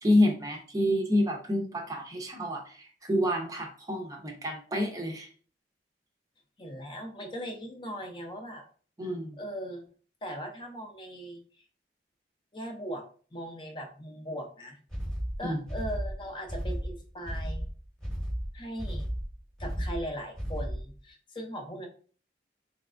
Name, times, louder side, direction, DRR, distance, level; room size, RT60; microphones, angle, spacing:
voice 1, 0.0-5.3 9.0-9.4 15.4-15.6, left 1 dB, 20° right, 3 dB, 0.6 m, -28 dB
voice 2, 6.6-8.6 9.0-9.9 10.2-11.6 12.5-13.0 13.3-14.8 15.4-17.7 18.5-19.1 19.6-21.9, equal, 30° left, 2 dB, 0.5 m, -39 dB
sound 1, 14.9-21.0, equal, 5° left, 0.9 m, -34 dB
3.3 x 3.1 x 2.5 m, 0.42 s
head